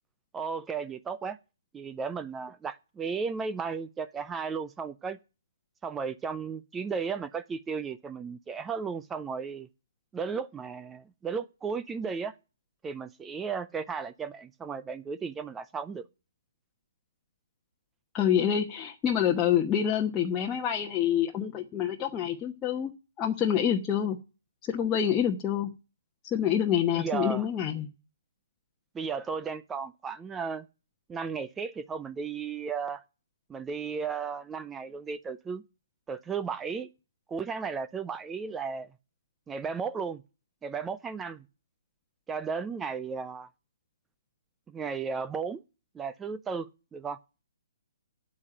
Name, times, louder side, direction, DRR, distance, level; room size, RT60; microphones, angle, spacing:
voice 1, 0.3-1.4 1.7-5.2 5.8-9.7 10.1-12.3 12.8-16.0 26.9-27.4 28.9-30.7 31.1-33.0 33.5-35.6 36.1-36.9 37.3-38.9 39.5-40.2 40.6-41.4 42.3-43.5 44.7-45.6 45.9-47.2, right 5 dB, 10° right, 0.6 m, -34 dB
voice 2, 18.1-22.9 23.2-24.2 24.6-25.7 26.3-27.9, left 9 dB, 20° left, 1.1 m, -27 dB
8.6 x 8.5 x 8.8 m
hypercardioid pair, 140°, 0 cm